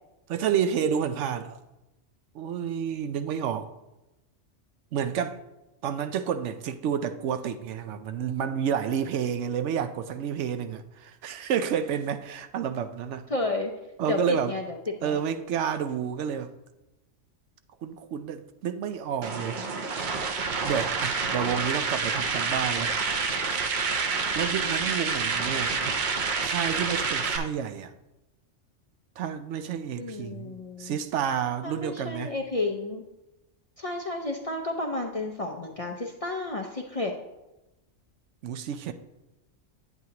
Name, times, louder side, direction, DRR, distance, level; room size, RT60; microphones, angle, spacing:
voice 1, 0.3-1.6 2.3-3.7 4.9-5.4 5.8-13.3 14.0-14.5 15.0-16.5 17.8-19.6 20.6-22.9 23.5-23.6 24.3-26.0 26.4-27.9 29.2-32.3 38.4-38.9, right 8 dB, 75° right, 9 dB, 0.9 m, -30 dB
voice 2, 13.3-13.7 14.1-15.2 30.0-31.0 31.6-33.0 33.8-37.1, left 2 dB, 40° left, 2 dB, 0.5 m, -31 dB
sound 1, 19.2-27.4, right 4 dB, 50° right, 0.7 m, -28 dB
9.1 x 8.0 x 2.8 m, 0.98 s
omnidirectional pair, 1.3 m